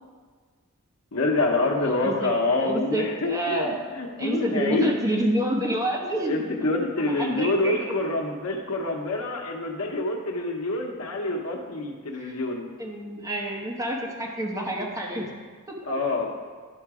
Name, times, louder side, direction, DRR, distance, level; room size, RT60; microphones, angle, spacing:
voice 1, 1.1-4.9 6.1-12.7 15.8-16.3, left 2 dB, 70° left, 1 dB, 1.0 m, -26 dB
voice 2, 1.7-2.3 2.6-3.8 4.2-6.4 7.0-8.0 12.2-12.3 12.8-15.3, right 1 dB, 15° right, -1 dB, 1.0 m, -28 dB
10.5 x 3.9 x 4.8 m, 1.5 s
head